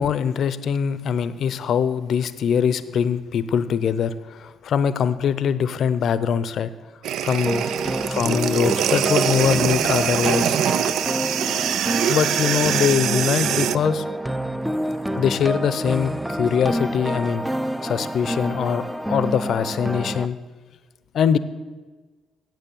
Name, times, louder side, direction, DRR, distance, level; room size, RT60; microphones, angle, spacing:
voice 1, 0.0-6.7 7.2-7.6 8.1-10.6 12.1-14.0 15.2-17.4 17.8-18.8 19.1-20.4 21.1-21.4, left 7 dB, 65° left, 15 dB, 0.6 m, -22 dB
sound 1, 7.0-13.8, right 10 dB, 75° right, 0.3 m, -23 dB
sound 2, 7.5-20.3, equal, 5° right, 0.5 m, -28 dB
9.1 x 7.7 x 7.4 m, 1.3 s
supercardioid pair, 55°, 0 cm